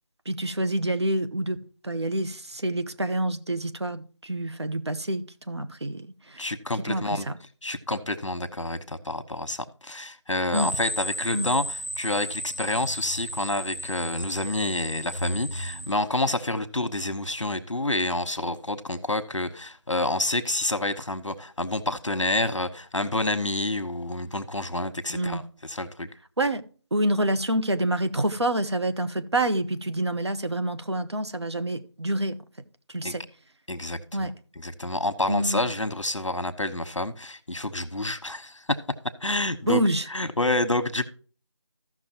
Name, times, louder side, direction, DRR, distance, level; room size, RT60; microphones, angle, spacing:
voice 1, 0.3-1.6 1.8-6.4 6.9-7.3 10.5-10.7 11.3-11.5 25.1-25.4 26.4-26.6 26.9-32.4 32.9-33.2 34.1-34.3 35.3-35.6 39.7-40.1, right 1 dB, 60° right, 0.9 m, -27 dB
voice 2, 6.4-7.3 7.6-26.1 33.0-33.2 33.7-38.8 39.2-39.8 40.1-41.1, left 2 dB, 75° left, 1.1 m, -28 dB
sound 1, 10.5-15.9, equal, 25° right, 0.9 m, -34 dB
15.0 x 6.1 x 2.9 m
figure-of-eight pair, 170°, 16 cm